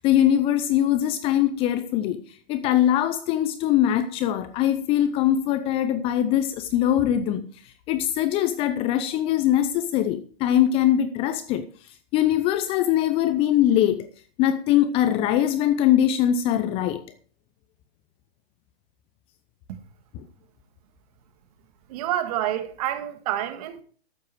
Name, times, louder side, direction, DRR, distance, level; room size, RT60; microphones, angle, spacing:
voice 1, 0.0-2.2 2.5-7.5 7.9-11.7 12.1-14.1 14.4-17.0, left 11 dB, 20° left, 0.6 m, -22 dB
voice 2, 21.9-23.8, right 12 dB, 40° right, 1.9 m, -28 dB
13.0 x 9.1 x 4.6 m
figure-of-eight pair, 130°, 30 cm